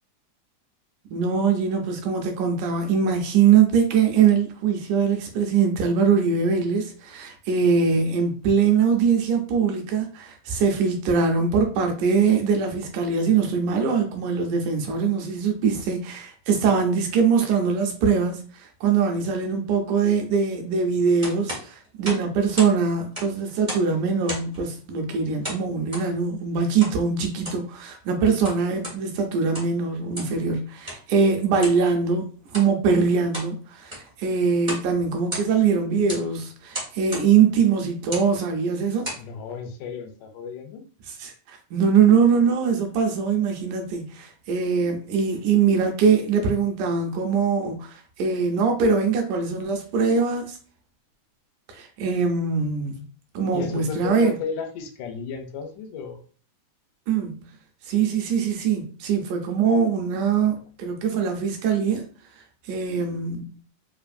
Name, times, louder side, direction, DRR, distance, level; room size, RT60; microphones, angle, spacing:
voice 1, 1.1-39.1 41.2-50.6 51.7-53.0 53.4-54.3 57.1-57.5 57.9-62.1 62.7-63.5, right 6 dB, 75° right, 2.0 m, -22 dB
sound 1, 21.2-22.8 23.0-23.9 24.2-24.6 25.4-26.1 26.8-27.0 27.3-27.7 28.2-29.0 29.4-29.8 30.1-30.4 30.8-31.0 31.6-31.8 32.4-32.7 33.1-33.5 33.8-34.1 34.6-34.9 35.2-35.7 36.1-36.3 36.7-37.3 38.0-38.3 38.8-39.3, equal, 50° right, 0.4 m, -34 dB
voice 2, 39.2-40.8 53.5-56.2 60.5-60.6, left 6 dB, 85° left, 2.1 m, -34 dB
5.1 x 2.4 x 2.5 m
omnidirectional pair, 3.7 m